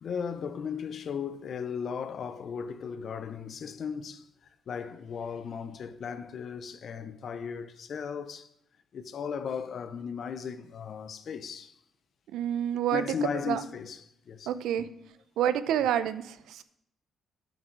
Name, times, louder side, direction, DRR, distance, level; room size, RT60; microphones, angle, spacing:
voice 1, 0.0-4.3 4.7-8.5 8.9-11.8 12.9-14.5 14.8-14.9, left 6 dB, 55° left, 0.7 m, -36 dB
voice 2, 12.3-13.1 13.5-13.6 14.5-14.9 15.4-16.6, right 10 dB, 85° right, 0.6 m, -28 dB
9.7 x 7.4 x 4.6 m
cardioid pair, 90°, 0 cm